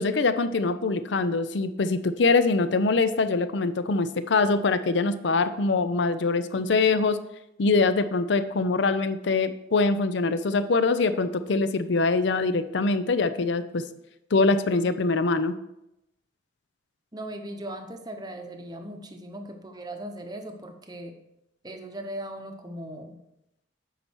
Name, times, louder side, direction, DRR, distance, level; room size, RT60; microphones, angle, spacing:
voice 1, 0.0-7.2 7.6-13.8 14.3-15.5, left 3 dB, 65° left, 12 dB, 0.5 m, -23 dB
voice 2, 17.1-21.2 21.6-23.2, right 1 dB, 20° right, 5 dB, 0.8 m, -38 dB
8.4 x 5.5 x 4.5 m, 0.86 s
head